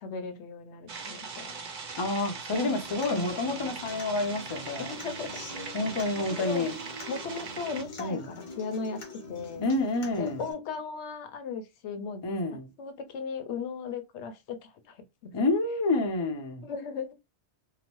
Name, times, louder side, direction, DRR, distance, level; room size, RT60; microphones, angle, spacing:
voice 1, 0.0-1.6 2.6-2.7 3.1-3.3 4.8-5.4 6.2-6.7 7.1-9.0 9.3-9.7 10.2-12.2 12.8-15.3 16.6-17.1, left 5 dB, 80° left, 0.9 m, -37 dB
sound 1, 0.9-7.8, right 5 dB, 55° right, 0.7 m, -40 dB
voice 2, 2.0-4.9 5.7-6.8 8.0-8.2 9.6-10.4 12.2-12.7 15.3-16.7, left 2 dB, 35° left, 0.4 m, -29 dB
Human voice / Acoustic guitar, 2.5-10.5, left 1 dB, 65° left, 1.1 m, -45 dB
2.8 x 2.0 x 2.9 m
omnidirectional pair, 1.2 m